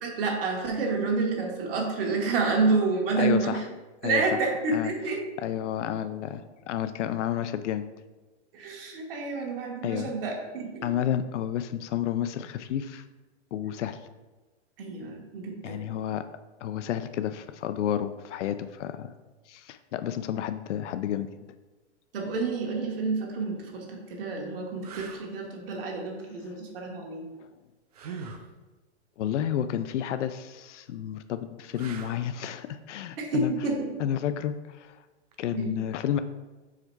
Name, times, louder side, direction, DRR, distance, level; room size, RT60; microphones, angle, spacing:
voice 1, 0.0-3.6 4.0-5.2 8.5-10.9 14.8-15.8 22.1-27.2 33.2-33.9 35.5-35.8, right 3 dB, 55° right, -1 dB, 1.4 m, -29 dB
voice 2, 3.2-3.7 4.0-4.4 4.7-4.9 5.4-7.9 9.8-10.1 10.8-13.0 13.5-14.1 15.6-16.3 16.6-19.1 19.5-21.4 27.4-27.5 29.2-33.5 34.0-35.0 35.4-36.2, left 10 dB, 80° left, 11 dB, 0.5 m, -31 dB
sound 1, 23.4-23.5 24.1-24.2 24.8-25.3 27.9-28.5 31.7-32.3 35.3-35.5, right 5 dB, 35° right, 0.4 m, -42 dB
5.4 x 4.9 x 4.5 m, 1.2 s
supercardioid pair, 170°, 35 cm